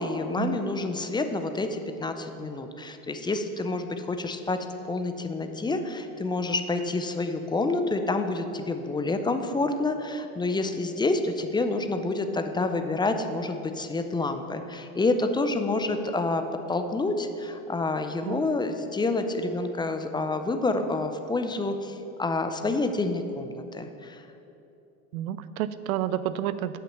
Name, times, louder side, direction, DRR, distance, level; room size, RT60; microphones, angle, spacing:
voice 1, 0.0-4.6 4.9-16.4 16.7-24.2, left 2 dB, 10° left, 7 dB, 0.5 m, -28 dB
voice 2, 25.1-26.8, right 11 dB, 80° right, 14 dB, 0.6 m, -30 dB
8.4 x 5.8 x 7.1 m, 2.8 s
hypercardioid pair, 100°, 42 cm